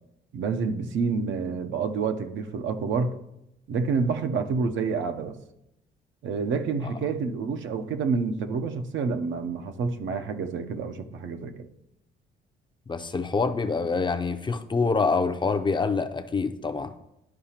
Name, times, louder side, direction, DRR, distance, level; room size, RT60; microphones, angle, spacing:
voice 1, 0.3-3.1 3.7-5.4 6.2-11.7, right 5 dB, 70° right, 0.7 m, -28 dB
voice 2, 12.9-16.9, left 4 dB, 25° left, 0.5 m, -26 dB
12.0 x 4.8 x 2.9 m
cardioid pair, 90°, 20 cm